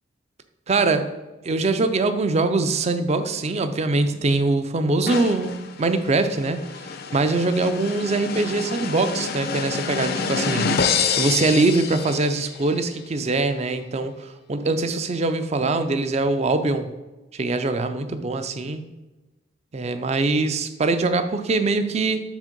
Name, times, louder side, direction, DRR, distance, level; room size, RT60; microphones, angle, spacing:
voice 1, 0.7-1.1 1.4-6.6 7.1-10.7 11.2-16.9 17.3-18.8 19.7-22.2, right 3 dB, 35° right, 10 dB, 0.4 m, -23 dB
sound 1, 5.1-12.6, left 5 dB, 50° left, 0.5 m, -28 dB
6.2 x 3.7 x 5.2 m, 1.1 s
head